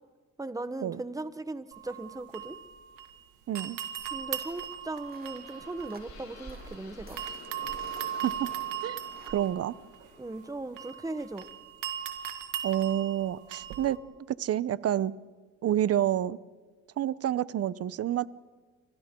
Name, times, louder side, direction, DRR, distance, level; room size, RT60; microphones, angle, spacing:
voice 1, 0.4-2.6 4.1-7.2 10.2-11.5, right 2 dB, 10° right, 12 dB, 1.1 m, -38 dB
sound 1, 1.7-3.2 3.6-6.8 7.2-14.0, right 10 dB, 85° right, 2.0 m, -39 dB
voice 2, 3.5-3.8 8.2-8.5 8.8-9.0 9.3-9.7 12.6-14.0 14.4-15.1 15.6-16.4 17.0-18.3, right 11 dB, 50° right, 18 dB, 0.7 m, -28 dB
sound 2, 4.0-9.4, right 3 dB, 30° right, 2.4 m, -51 dB
sound 3, 4.4-12.3, left 4 dB, 60° left, 7.6 m, -52 dB
29.5 x 25.5 x 3.8 m, 1.4 s
cardioid pair, 105°, 31 cm